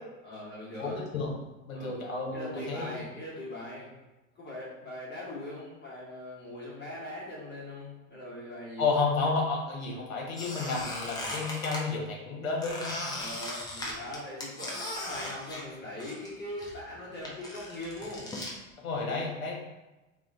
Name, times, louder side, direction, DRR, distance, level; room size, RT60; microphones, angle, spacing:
voice 1, 0.2-1.0 1.7-1.9 2.3-3.9 4.3-8.9 11.1-11.4 13.2-18.3 19.0-19.3, left 1 dB, 25° left, -7 dB, 1.2 m, -41 dB
voice 2, 0.8-1.3 1.7-3.0 8.8-13.0 18.8-19.6, left 4 dB, 75° left, -1 dB, 0.9 m, -31 dB
Squeak, 10.3-11.8 12.6-16.3 16.6-18.5, left 1 dB, 10° left, 0.6 m, -38 dB
2.4 x 2.4 x 3.3 m, 1.1 s
hypercardioid pair, 90°, 41 cm